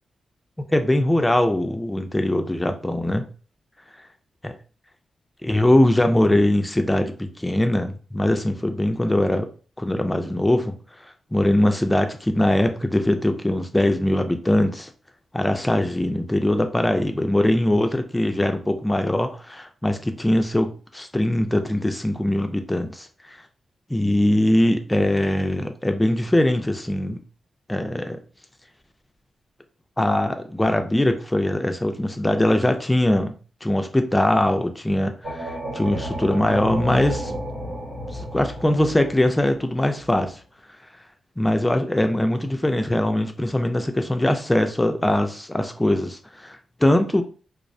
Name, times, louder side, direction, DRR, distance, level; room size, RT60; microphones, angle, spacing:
voice 1, 0.7-3.3 4.4-4.5 5.4-9.5 9.8-10.7 11.3-14.9 15.3-23.4 23.9-27.2 27.7-28.2 30.0-33.3 33.6-37.3 38.1-40.4 41.4-47.2, left 1 dB, 10° left, 6 dB, 0.3 m, -21 dB
sound 1, 35.2-40.2, equal, 90° right, 1.5 m, -32 dB
2.4 x 2.0 x 2.5 m, 0.37 s
cardioid pair, 85°, 0 cm